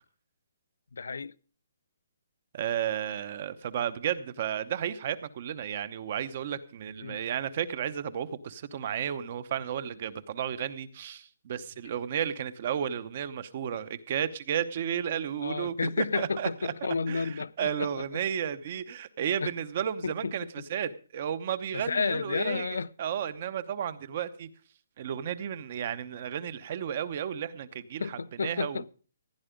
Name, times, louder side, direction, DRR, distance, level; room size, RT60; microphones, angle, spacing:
voice 1, 0.9-1.3 7.0-7.2 15.4-17.9 19.4-19.5 20.0-20.5 21.7-22.9 28.0-28.9, left 4 dB, 80° left, 0.6 m, -31 dB
voice 2, 2.5-16.7 17.1-24.5 25.0-28.8, right 9 dB, 30° right, 0.8 m, -33 dB
16.0 x 10.0 x 5.1 m
hypercardioid pair, 180°, 0 cm